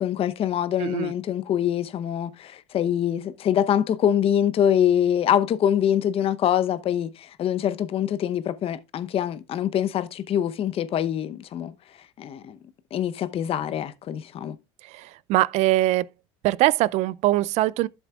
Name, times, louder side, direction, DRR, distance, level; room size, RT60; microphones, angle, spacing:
voice 1, 0.0-11.7 12.2-12.6 12.9-14.6, left 10 dB, 50° left, 0.8 m, -24 dB
voice 2, 0.8-1.1 14.8-16.1 16.4-17.9, right 16 dB, 65° right, 0.4 m, -22 dB
12.0 x 7.2 x 2.4 m
supercardioid pair, 90°, 13 cm